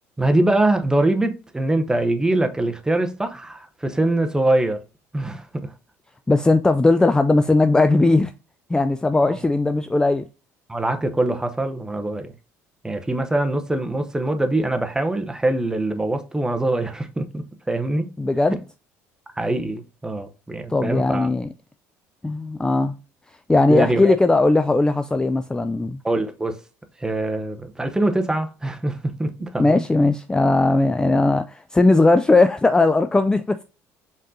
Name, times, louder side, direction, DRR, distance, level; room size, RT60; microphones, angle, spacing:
voice 1, 0.2-4.8 5.1-5.7 9.3-9.4 10.7-12.3 12.8-18.1 18.5-18.6 19.4-21.3 23.7-24.2 26.0-26.6 27.0-29.8, right 2 dB, 10° right, 0.7 m, -23 dB
voice 2, 6.3-8.3 8.7-10.3 18.2-18.6 20.7-21.5 22.2-23.0 23.5-26.0 29.6-33.6, left 2 dB, 10° left, 0.3 m, -18 dB
5.2 x 3.7 x 2.7 m
supercardioid pair, 85°, 7 cm